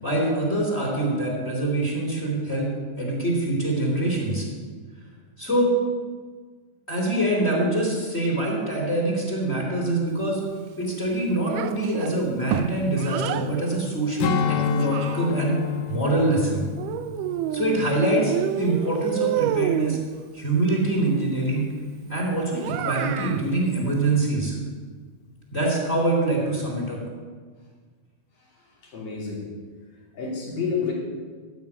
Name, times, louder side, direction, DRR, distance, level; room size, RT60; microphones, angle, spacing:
voice 1, 0.0-2.7 3.0-4.4 5.4-5.7 6.9-10.4 10.8-16.6 17.5-20.0 20.3-21.7 22.1-24.5 25.5-27.0, right 2 dB, 20° left, -2 dB, 2.9 m, -24 dB
Child speech kid speaking, 11.5-13.5 14.4-15.6 16.8-17.9 18.3-20.0 22.6-23.4, right 12 dB, 80° right, 2.0 m, -29 dB
Strum, 14.2-18.9 19.3-19.5, left 8 dB, 80° left, 2.3 m, -30 dB
voice 2, 28.8-29.5 30.1-30.9, left 5 dB, 55° left, -4 dB, 4.3 m, -29 dB
14.0 x 6.0 x 8.6 m, 1.5 s
omnidirectional pair, 3.9 m